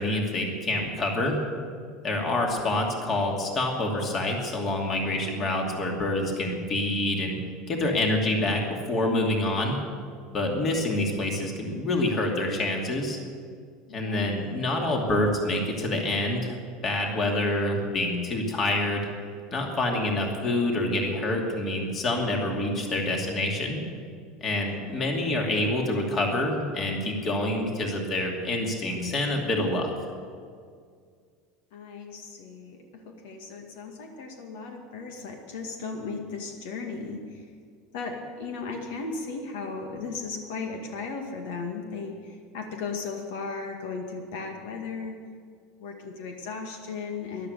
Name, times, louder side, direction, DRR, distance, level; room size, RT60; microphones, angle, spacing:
voice 1, 0.0-1.4 2.0-7.4 7.7-9.8 10.3-13.2 13.9-19.1 19.5-23.8 24.4-29.9, left 1 dB, 30° left, 1 dB, 2.6 m, -27 dB
voice 2, 2.2-3.0 5.3-5.5 13.9-14.6 24.5-25.3 31.7-37.5 37.9-45.2 45.8-47.5, left 4 dB, 85° left, 3 dB, 2.1 m, -37 dB
13.5 x 11.5 x 8.4 m, 2.1 s
supercardioid pair, 150°, 0 cm